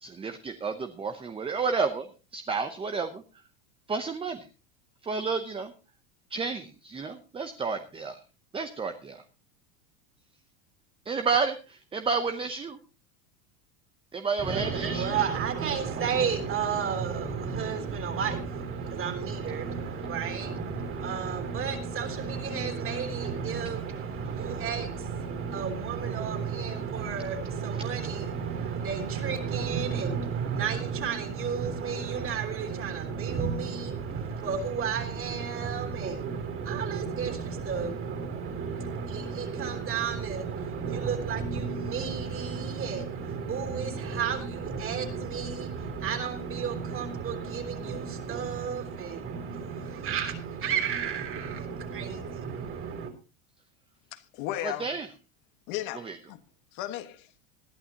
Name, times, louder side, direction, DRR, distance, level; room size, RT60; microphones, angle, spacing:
voice 1, 0.0-3.2 3.9-4.5 5.0-5.7 6.3-8.2 8.5-9.2 11.1-12.8 14.1-15.1 54.6-55.1 56.0-56.2, right 5 dB, 15° right, 0.8 m, -31 dB
voice 2, 14.4-53.1, right 6 dB, 30° right, 3.5 m, -32 dB
voice 3, 54.1-54.9 55.7-56.4 56.7-57.3, left 13 dB, 55° left, 1.7 m, -35 dB
20.0 x 12.0 x 2.9 m
supercardioid pair, 135°, 41 cm